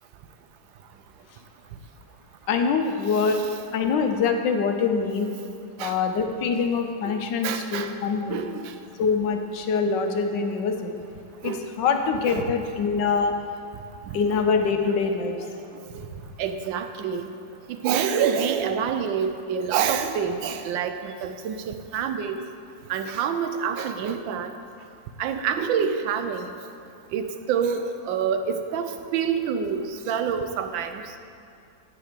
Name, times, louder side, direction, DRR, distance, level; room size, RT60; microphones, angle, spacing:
voice 1, 2.5-3.4 3.7-5.3 5.8-8.4 9.0-10.9 11.4-13.3 14.1-15.4, left 5 dB, 75° left, 5 dB, 1.4 m, -24 dB
voice 2, 7.4-7.9 8.3-8.8 11.4-11.6 12.3-12.5 14.1-14.2 15.6-15.7 15.9-16.1 16.4-17.3 17.7-22.4 22.9-24.5 25.2-26.6 27.1-31.0, right 7 dB, 90° right, 8 dB, 1.4 m, -27 dB
10.0 x 7.9 x 5.1 m, 2.5 s
omnidirectional pair, 2.0 m